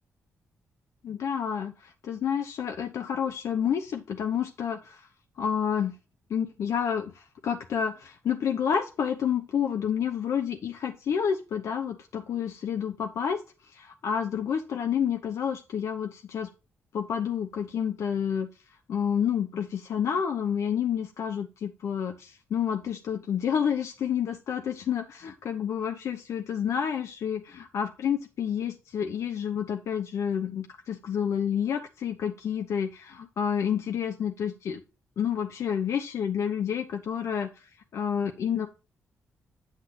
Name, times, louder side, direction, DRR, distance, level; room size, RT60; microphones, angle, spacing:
voice 1, 1.0-5.0 5.4-5.9 6.3-16.5 16.9-18.5 18.9-34.8 35.2-38.7, left 8 dB, 70° left, 5 dB, 0.8 m, -29 dB
8.2 x 7.3 x 2.8 m, 0.31 s
cardioid pair, 90°, 5 cm